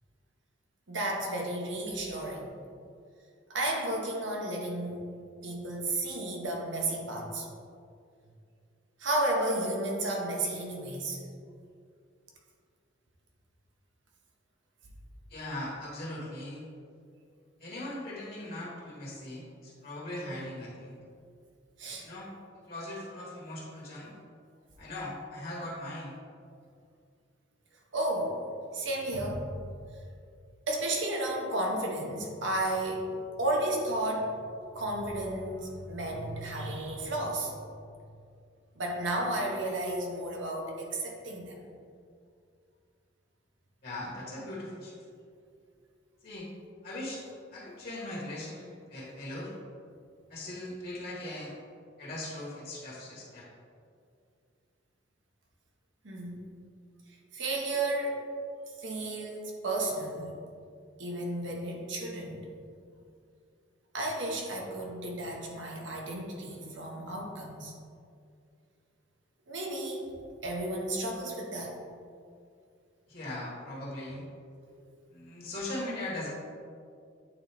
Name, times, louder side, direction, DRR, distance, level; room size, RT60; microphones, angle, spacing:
voice 1, 0.9-2.5 3.5-5.0 5.4-7.5 9.0-11.2 21.8-22.1 27.9-28.4 28.7-29.5 30.7-33.1 33.4-34.3 34.7-37.5 38.8-41.6 56.0-56.4 57.3-58.2 58.8-60.3 61.0-62.5 63.9-67.7 69.5-70.1 70.4-71.8, right 1 dB, 70° right, 0 dB, 1.1 m, -32 dB
voice 2, 15.3-16.7 17.6-21.0 22.0-22.3 22.7-24.1 24.8-26.2 43.8-45.0 46.2-46.5 46.8-47.2 47.5-49.5 50.3-51.5 52.0-53.5 73.1-74.3 74.6-74.8 75.1-76.3, left 1 dB, 50° left, -5 dB, 1.5 m, -39 dB
8.9 x 3.9 x 3.4 m, 2.3 s
head